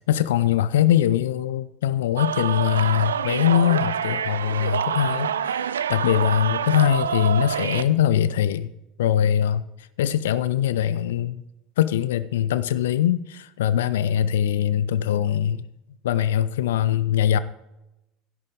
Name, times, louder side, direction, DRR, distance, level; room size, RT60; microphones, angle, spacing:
voice 1, 0.1-8.7 9.0-9.6 10.0-11.4 11.8-15.6 16.0-17.4, left 10 dB, 70° left, 16 dB, 0.4 m, -22 dB
sound 1, 2.2-7.8, right 8 dB, 75° right, 0.4 m, -26 dB
12.5 x 10.5 x 3.5 m, 0.92 s
figure-of-eight pair, 70°, 0 cm